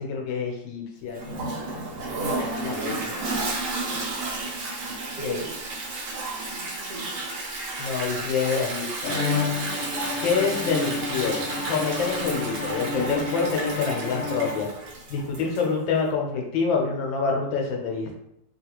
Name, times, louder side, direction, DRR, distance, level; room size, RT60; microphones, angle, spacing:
voice 1, 0.0-1.5 2.6-3.1 5.2-5.4 7.8-9.2 10.2-14.7 15.1-18.3, left 5 dB, 90° left, 1 dB, 1.5 m, -27 dB
Toilet flush, 1.2-15.8, right 2 dB, 90° right, 1.5 m, -32 dB
voice 2, 2.6-3.4 3.7-4.1 5.1-5.8 6.1-7.4, right 2 dB, 75° right, -7 dB, 0.5 m, -41 dB
Bowed string instrument, 9.0-15.0, left 4 dB, 60° left, 0.9 m, -31 dB
3.6 x 2.4 x 2.9 m, 0.80 s
omnidirectional pair, 2.0 m